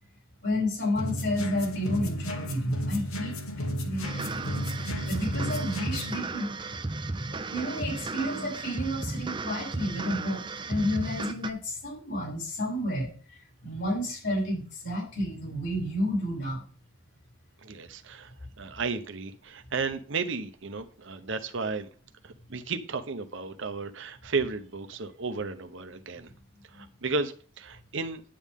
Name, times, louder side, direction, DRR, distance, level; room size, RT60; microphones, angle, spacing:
voice 1, 0.4-4.5 4.8-6.5 7.3-16.6 26.7-26.9, left 1 dB, 55° left, 6.4 m, -31 dB
sound 1, 0.9-6.2, equal, 80° left, 1.4 m, -33 dB
sound 2, 4.0-11.5, right 3 dB, 20° right, 0.5 m, -35 dB
voice 2, 17.6-18.3 18.6-21.9 22.2-26.3 26.7-28.2, right 4 dB, 60° right, 0.9 m, -33 dB
10.0 x 8.7 x 3.6 m
head